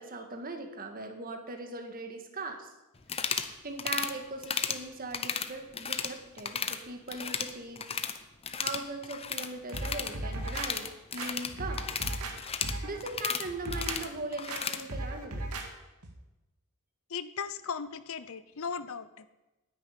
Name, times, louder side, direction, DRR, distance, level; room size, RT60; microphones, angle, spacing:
voice 1, 0.0-2.7 3.4-7.9 8.5-12.0 12.6-15.5, right 2 dB, 40° right, 6 dB, 1.8 m, -40 dB
sound 1, 3.0-3.5 3.8-4.1 4.4-4.8 5.1-6.1 6.4-6.8 7.1-8.2 8.4-14.8, left 7 dB, 25° left, 0.8 m, -34 dB
sound 2, 9.7-10.7 11.2-12.4 12.6-13.0 13.4-14.0 14.5-14.6 14.9-15.7 16.0-16.1, right 2 dB, 85° right, 2.1 m, -36 dB
voice 2, 17.1-19.3, left 6 dB, 65° left, 14 dB, 0.6 m, -37 dB
10.0 x 9.3 x 9.9 m, 1.0 s
head